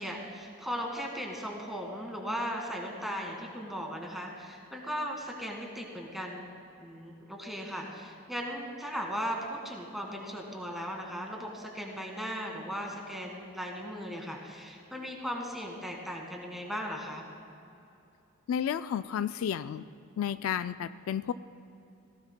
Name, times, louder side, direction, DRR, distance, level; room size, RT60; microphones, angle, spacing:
voice 1, 0.0-6.5 6.8-17.3, equal, ahead, 0 dB, 1.7 m, -37 dB
voice 2, 18.5-19.8 20.2-21.3, left 8 dB, 70° left, 13 dB, 0.3 m, -32 dB
18.5 x 17.0 x 2.2 m, 2.7 s
head